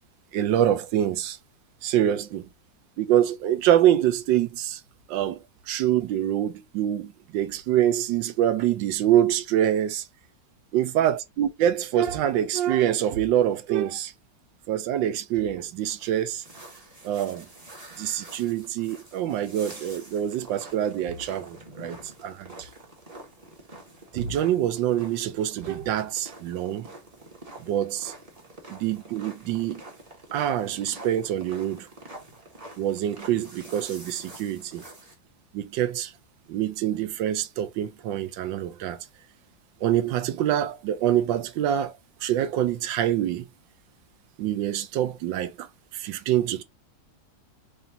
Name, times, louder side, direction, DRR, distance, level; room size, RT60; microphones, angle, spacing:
voice 1, 0.3-1.4 1.8-2.5 3.0-4.8 5.1-10.1 10.7-14.1 14.7-16.4 17.0-17.5 18.0-22.6 24.1-26.9 27.6-28.1 28.7-29.8 30.3-31.9 32.8-34.8 35.5-36.1 36.5-39.0 39.8-43.4 44.4-45.7 45.9-46.6, right 11 dB, 85° right, 1.4 m, -25 dB
sound 1, 15.8-35.1, right 2 dB, 20° right, 1.3 m, -46 dB
4.9 x 2.8 x 2.7 m
omnidirectional pair, 2.0 m